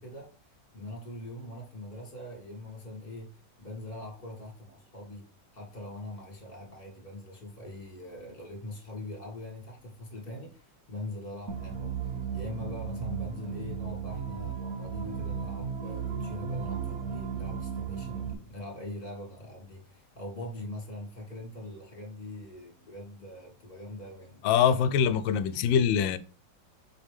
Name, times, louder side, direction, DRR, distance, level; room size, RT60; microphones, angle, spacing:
voice 1, 0.0-5.2 5.5-24.4, left 1 dB, 30° left, 2.6 m, -42 dB
sound 1, 11.5-18.3, right 7 dB, 50° right, 1.5 m, -35 dB
voice 2, 24.4-26.2, left 8 dB, 85° left, 1.4 m, -24 dB
7.2 x 5.0 x 3.5 m
omnidirectional pair, 2.0 m